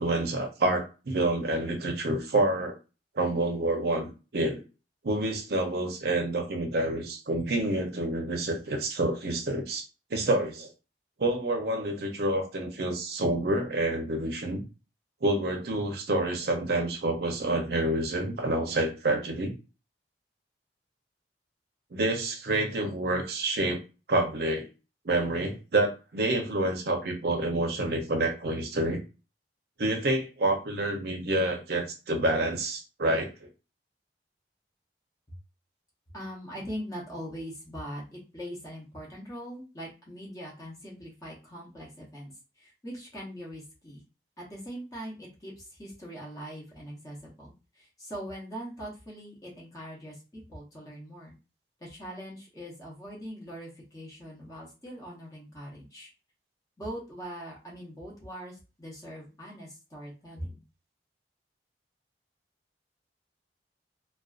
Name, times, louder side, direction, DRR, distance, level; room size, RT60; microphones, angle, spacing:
voice 1, 0.0-2.8 3.2-4.6 5.0-9.8 10.1-10.7 11.2-14.6 15.2-19.5 21.9-23.8 24.1-24.6 25.0-29.0 29.8-33.3, right 2 dB, 60° right, 3 dB, 0.6 m, -28 dB
voice 2, 36.1-44.0 44.4-51.4 51.8-56.1 56.8-60.6, equal, 20° left, -4 dB, 0.8 m, -42 dB
2.5 x 2.3 x 2.4 m, 0.31 s
head